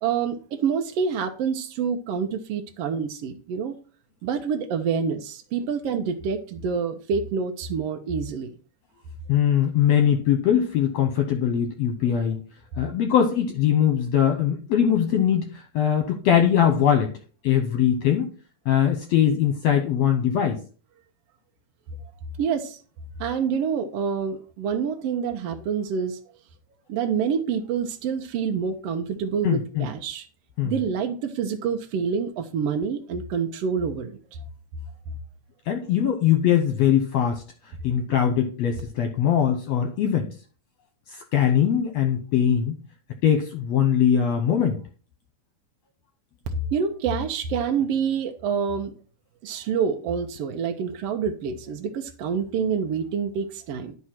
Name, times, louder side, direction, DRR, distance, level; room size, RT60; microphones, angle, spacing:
voice 1, 0.0-3.8 4.2-8.5 22.4-22.8 23.2-26.2 26.9-30.3 30.6-34.2 46.7-48.9 49.4-54.0, right 6 dB, 70° right, 4 dB, 1.6 m, -27 dB
voice 2, 9.3-12.4 12.8-17.1 17.4-18.3 18.7-20.6 29.4-29.9 30.6-30.7 35.7-37.4 37.8-40.3 41.1-42.8 43.2-44.8, left 9 dB, 70° left, 5 dB, 1.8 m, -21 dB
10.5 x 4.8 x 5.8 m, 0.39 s
omnidirectional pair, 3.5 m